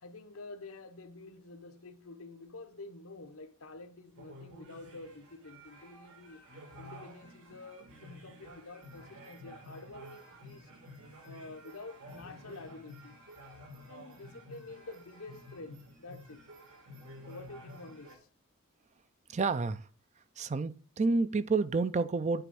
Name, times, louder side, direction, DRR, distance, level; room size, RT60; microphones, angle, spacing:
voice 1, 0.0-6.4 6.8-10.7 11.2-13.1 13.9-16.5 17.3-18.3, left 2 dB, 70° left, 1.0 m, -48 dB
sound 1, 4.2-18.2, equal, 80° right, 3.7 m, -51 dB
voice 2, 19.3-19.9 20.4-22.4, right 3 dB, 30° right, 0.4 m, -29 dB
9.2 x 3.5 x 6.9 m
head